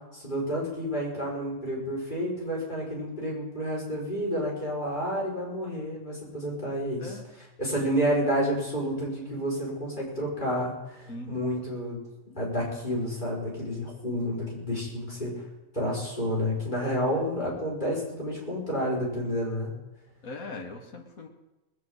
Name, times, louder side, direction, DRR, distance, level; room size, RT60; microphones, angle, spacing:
voice 1, 0.1-12.0 12.4-15.4 15.7-19.7, equal, 35° left, -4 dB, 5.6 m, -30 dB
voice 2, 20.2-21.3, left 2 dB, 80° left, 3 dB, 2.1 m, -40 dB
20.0 x 7.1 x 8.2 m, 1.0 s
omnidirectional pair, 1.5 m